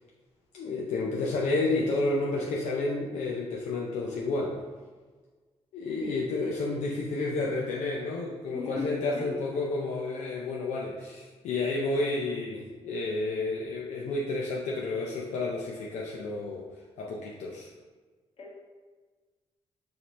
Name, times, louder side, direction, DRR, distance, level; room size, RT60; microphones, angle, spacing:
voice 1, 0.5-4.6 5.7-16.7 17.0-17.7, left 2 dB, 85° left, -3 dB, 0.5 m, -31 dB
voice 2, 6.0-6.5 8.5-9.4 18.4-18.6, left 3 dB, 55° left, -3 dB, 1.3 m, -37 dB
4.9 x 2.8 x 3.0 m, 1.4 s
cardioid pair, 75°, 12 cm